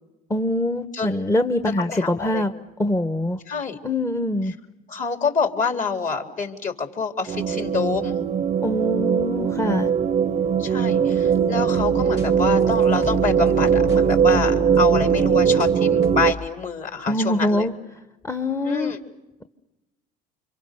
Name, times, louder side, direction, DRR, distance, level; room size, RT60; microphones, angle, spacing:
voice 1, 0.3-2.5 2.8-3.4 3.8-4.5 8.6-9.9 17.1-17.7 18.2-18.9, left 1 dB, 15° left, 9 dB, 1.3 m, -23 dB
voice 2, 1.9-2.4 3.5-3.8 4.9-8.1 10.6-17.7 18.6-19.0, left 5 dB, 40° left, 5 dB, 4.0 m, -27 dB
sound 1, 7.3-16.3, right 7 dB, 35° right, 0.8 m, -20 dB
sound 2, 11.2-15.7 16.0-16.5, left 3 dB, 65° left, 2.2 m, -34 dB
29.5 x 26.5 x 6.9 m, 1.0 s
supercardioid pair, 75°, 20 cm